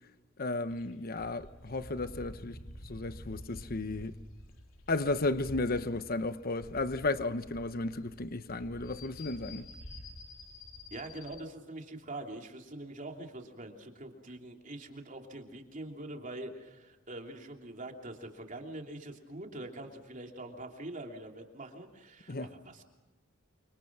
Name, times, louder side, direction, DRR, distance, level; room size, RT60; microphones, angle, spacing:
voice 1, 0.4-2.6 2.8-4.2 4.9-9.7 22.3-22.5, left 2 dB, 45° left, 1.0 m, -34 dB
sound 1, 0.7-11.4, left 1 dB, 85° left, 2.9 m, -49 dB
voice 2, 10.9-22.8, right 1 dB, 40° right, 3.0 m, -44 dB
30.0 x 24.5 x 6.1 m
head